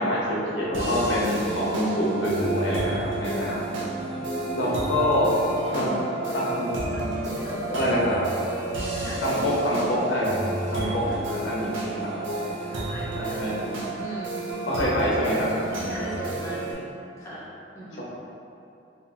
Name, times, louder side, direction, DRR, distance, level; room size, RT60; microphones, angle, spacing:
voice 1, 0.0-3.6 4.6-5.3 5.7-5.9 6.3-6.7 7.7-8.1 9.2-10.3 10.7-10.8 11.3-12.2 13.1-13.5 14.6-15.5, equal, 80° left, -6 dB, 0.8 m, -25 dB
sound 1, 0.7-16.7, right 3 dB, 90° right, 0.7 m, -32 dB
Musical instrument, 3.5-11.6, left 1 dB, 30° right, 1.3 m, -38 dB
voice 2, 5.6-6.5 6.9-7.9 8.9-9.4 10.5-12.1 12.4-13.4 13.7-14.4 15.7-17.5 17.7-18.0, equal, 15° left, -9 dB, 0.6 m, -38 dB
4.7 x 2.6 x 2.4 m, 2.7 s
head